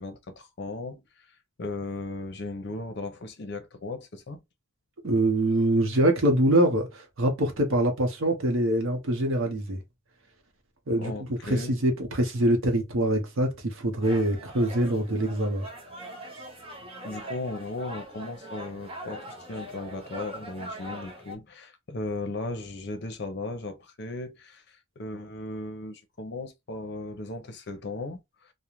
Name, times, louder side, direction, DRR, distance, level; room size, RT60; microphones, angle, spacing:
voice 1, 0.0-4.4 11.0-11.8 17.0-28.5, left 2 dB, 60° left, 0.6 m, -37 dB
voice 2, 5.0-9.8 10.9-15.7, right 1 dB, 85° right, 0.7 m, -24 dB
sound 1, 14.0-21.4, right 1 dB, 30° right, 0.6 m, -41 dB
2.4 x 2.1 x 2.9 m
head